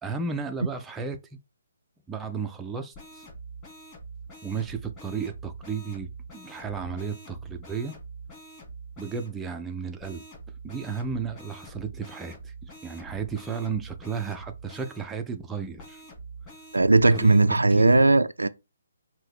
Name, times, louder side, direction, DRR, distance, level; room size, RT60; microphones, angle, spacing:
voice 1, 0.0-1.4 2.1-3.3 4.4-8.0 9.0-10.2 10.6-16.0 17.1-17.4 17.7-18.1, right 5 dB, 10° right, 0.4 m, -34 dB
sound 1, 2.9-9.3 10.0-15.0 15.8-17.4, right 3 dB, 20° left, 2.7 m, -44 dB
voice 2, 16.7-18.5, right 2 dB, 70° right, 0.3 m, -18 dB
5.3 x 2.6 x 3.5 m
figure-of-eight pair, 135°, 0 cm